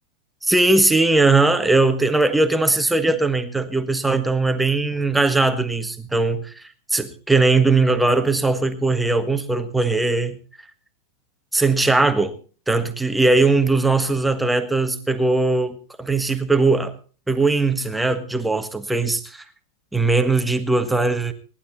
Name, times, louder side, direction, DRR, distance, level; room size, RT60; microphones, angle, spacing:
voice 1, 0.4-10.4 11.5-12.3 12.7-16.9 17.3-19.4 19.9-21.3, right 3 dB, 5° right, 8 dB, 1.5 m, -19 dB
18.0 x 11.5 x 4.2 m, 0.39 s
figure-of-eight pair, 90°, 0 cm